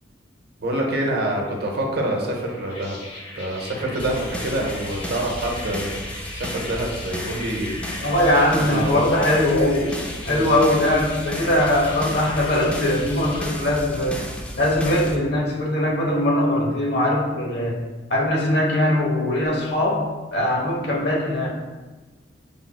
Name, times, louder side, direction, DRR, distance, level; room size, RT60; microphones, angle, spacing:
voice 1, 0.6-3.0 3.4-6.0 6.3-7.8 8.5-9.0 10.2-10.5, right 1 dB, 55° right, 0 dB, 0.8 m, -26 dB
sound 1, 2.4-13.5, left 2 dB, 30° left, 0.9 m, -38 dB
sound 2, 4.0-15.2, left 1 dB, 5° left, 0.4 m, -34 dB
voice 2, 8.0-10.0 10.3-14.2 14.6-17.8 18.1-20.1 20.3-21.5, left 1 dB, 60° left, -2 dB, 1.0 m, -21 dB
6.0 x 3.3 x 2.3 m, 1.3 s
head